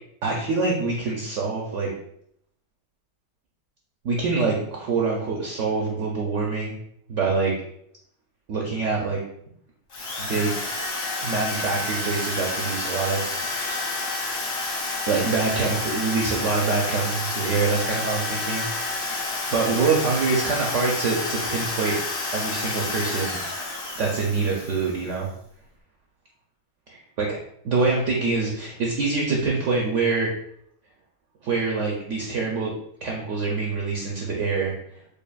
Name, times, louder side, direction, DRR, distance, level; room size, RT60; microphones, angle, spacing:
voice 1, 0.2-1.9 4.0-6.8 7.1-7.5 8.5-9.2 10.2-10.6 11.2-14.0 15.1-18.6 19.0-22.0 22.3-23.4 24.0-25.3 26.9-27.4 27.6-30.3 31.4-32.7 33.0-34.7, right 4 dB, 65° right, -2 dB, 0.8 m, -25 dB
Drill, 9.9-25.1, left 2 dB, 50° left, 0.7 m, -29 dB
4.9 x 2.6 x 2.3 m, 0.71 s
omnidirectional pair, 1.7 m